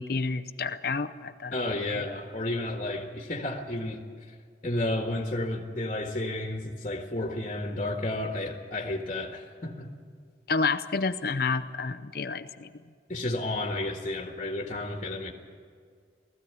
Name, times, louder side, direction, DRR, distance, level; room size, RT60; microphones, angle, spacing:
voice 1, 0.0-1.6 1.9-2.0 10.5-12.7, left 4 dB, 55° left, 9 dB, 0.6 m, -29 dB
voice 2, 1.5-4.0 4.6-9.9 13.1-15.3, left 1 dB, 35° left, 1 dB, 1.7 m, -32 dB
19.0 x 15.0 x 9.6 m, 2.1 s
head